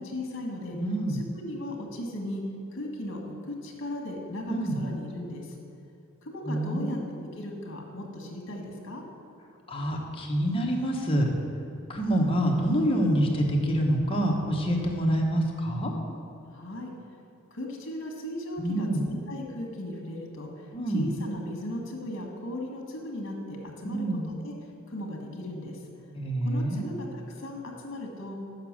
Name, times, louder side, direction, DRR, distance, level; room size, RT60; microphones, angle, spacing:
voice 1, 0.0-0.8 1.1-2.4 2.7-5.5 6.2-7.0 7.4-9.0 16.5-16.9 17.5-20.5 20.9-24.1 24.4-24.5 24.9-25.8 26.4-28.4, left 1 dB, 60° left, 1 dB, 1.6 m, -37 dB
voice 2, 0.7-1.3 4.5-4.8 6.4-7.0 9.7-11.3 11.9-15.9 18.6-19.1 20.7-21.1 23.8-24.3 26.1-27.0, right 1 dB, 25° left, 0 dB, 1.1 m, -26 dB
6.7 x 6.1 x 7.4 m, 2.7 s
head